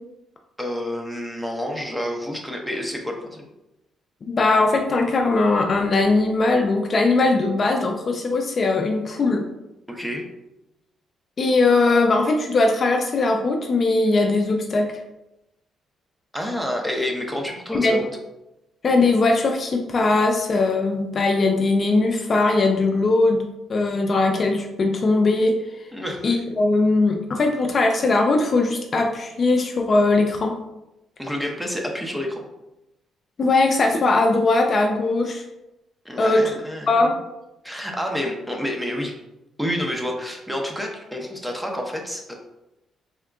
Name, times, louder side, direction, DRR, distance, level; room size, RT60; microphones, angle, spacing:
voice 1, 0.6-3.4 9.9-10.2 16.3-18.1 25.9-26.4 31.2-32.4 36.0-37.1 37.6-39.1 39.6-42.3, left 1 dB, 5° right, 1 dB, 0.7 m, -29 dB
voice 2, 4.2-9.5 11.4-14.9 17.7-18.0 18.8-25.6 26.2-30.6 33.4-35.4 36.2-36.4 36.9-37.1, left 3 dB, 40° left, 3 dB, 0.4 m, -20 dB
3.6 x 3.5 x 2.3 m, 0.91 s
cardioid pair, 90°, 0 cm